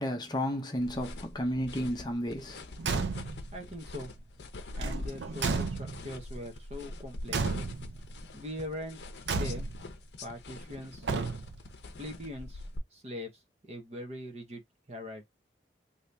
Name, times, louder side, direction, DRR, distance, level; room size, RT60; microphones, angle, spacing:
voice 1, 0.0-2.6, equal, 25° left, 0.6 m, -32 dB
sound 1, 0.8-12.8, left 2 dB, 70° left, 0.6 m, -43 dB
Car / Truck / Slam, 2.8-3.5 4.8-6.2 7.3-8.1 9.3-9.9 11.0-11.7, right 4 dB, 75° right, 0.5 m, -33 dB
voice 2, 3.5-4.3 4.8-7.4 8.3-9.0 9.3-9.7 10.2-11.1 12.0-12.7 12.9-13.3 13.6-14.6 14.9-15.2, left 1 dB, 35° right, 0.8 m, -41 dB
2.7 x 2.7 x 3.3 m
head